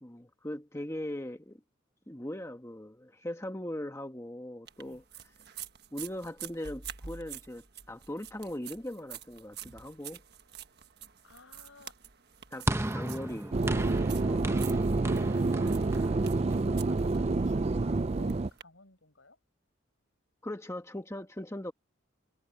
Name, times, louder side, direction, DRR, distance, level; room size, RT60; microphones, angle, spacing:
voice 1, 0.0-1.6 2.1-5.0 5.9-10.2 12.5-12.7 12.9-14.4 20.4-21.7, left 1 dB, 15° left, 1.3 m, -40 dB
sound 1, 4.7-18.6, right 9 dB, 50° right, 1.5 m, -48 dB
voice 2, 11.2-11.9 14.9-16.3 16.7-19.4, left 3 dB, 75° left, 5.6 m, -55 dB
sound 2, 12.7-17.1, right 1 dB, 15° right, 0.8 m, -36 dB
sound 3, 13.5-18.5, right 3 dB, 30° right, 0.4 m, -28 dB
head